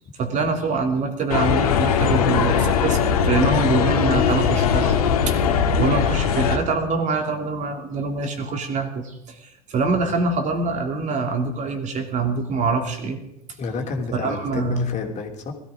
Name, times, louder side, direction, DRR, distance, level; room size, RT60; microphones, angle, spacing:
voice 1, 0.2-5.0 5.3-5.4 5.8-13.2 14.1-14.9, right 4 dB, 40° right, 4 dB, 3.0 m, -24 dB
sound 1, 1.3-6.6, left 7 dB, 75° left, 1.9 m, -20 dB
voice 2, 13.6-15.5, left 4 dB, 35° left, 2 dB, 3.0 m, -30 dB
20.0 x 14.0 x 5.1 m, 0.78 s
hypercardioid pair, 80°, 19 cm